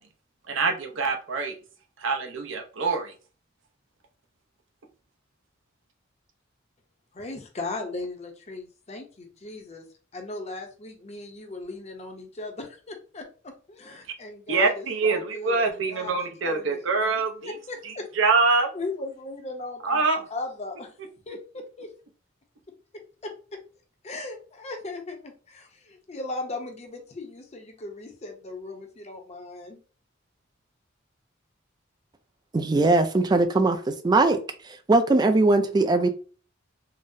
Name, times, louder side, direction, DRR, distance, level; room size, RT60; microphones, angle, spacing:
voice 1, 0.5-1.5 2.0-3.1 14.5-17.5 17.8-18.7 19.8-20.3, right 4 dB, 70° right, 3 dB, 0.6 m, -25 dB
voice 2, 7.1-9.8 10.1-17.1 17.4-18.1 18.7-20.0 20.3-20.9 21.3-21.9 22.9-23.6 24.0-29.8, left 2 dB, 35° left, 3 dB, 0.6 m, -38 dB
voice 3, 32.5-34.4 34.9-36.1, right 2 dB, 20° right, 8 dB, 0.3 m, -20 dB
3.9 x 2.0 x 2.6 m, 0.38 s
head